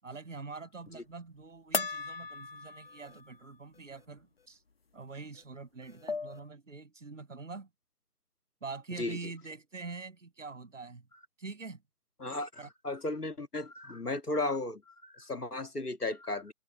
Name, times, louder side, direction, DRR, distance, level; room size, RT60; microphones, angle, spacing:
voice 1, 0.0-4.6 4.9-7.7 8.6-11.0 11.4-11.8 12.6-12.7, right 4 dB, 55° right, 7.6 m, -44 dB
Iron Box Hit, 1.7-3.4 3.8-3.9 5.4-5.5 5.8-6.5, left 4 dB, 40° left, 1.3 m, -37 dB
voice 2, 12.2-16.5, left 2 dB, 85° left, 2.1 m, -35 dB
figure-of-eight pair, 155°, 45 cm